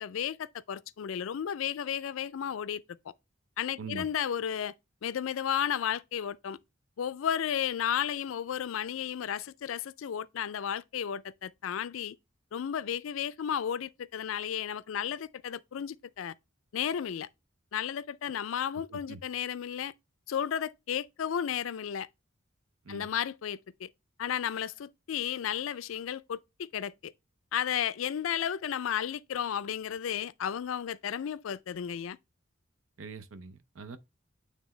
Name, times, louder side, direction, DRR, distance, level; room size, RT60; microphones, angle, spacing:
voice 1, 0.0-2.8 3.6-4.7 5.0-6.6 7.0-12.2 12.5-16.3 16.7-17.3 17.7-19.9 20.3-22.1 22.9-23.9 24.2-27.1 27.5-32.2, left 9 dB, 80° left, 0.4 m, -33 dB
voice 2, 18.9-19.2 22.8-23.1 33.0-34.0, right 4 dB, 85° right, 0.7 m, -43 dB
9.2 x 3.3 x 3.1 m
head